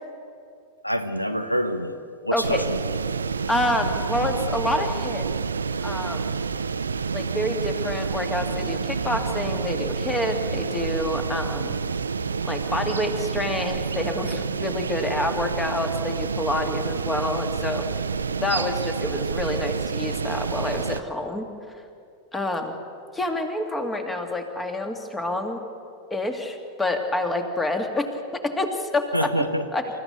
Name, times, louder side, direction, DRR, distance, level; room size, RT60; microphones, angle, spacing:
voice 1, 0.8-2.8 29.1-29.6, equal, 90° left, 9 dB, 1.0 m, -26 dB
voice 2, 2.3-2.6 3.5-5.3 5.8-6.4 7.1-11.8 12.4-17.9 18.4-21.5 22.3-22.7 23.1-25.6 26.1-28.1 28.4-29.3 29.7-30.0, left 1 dB, 10° left, 5 dB, 2.2 m, -27 dB
sound 1, 2.4-21.0, right 5 dB, 75° right, 0.6 m, -28 dB
28.0 x 14.5 x 6.8 m, 2.5 s
figure-of-eight pair, 90°, 0 cm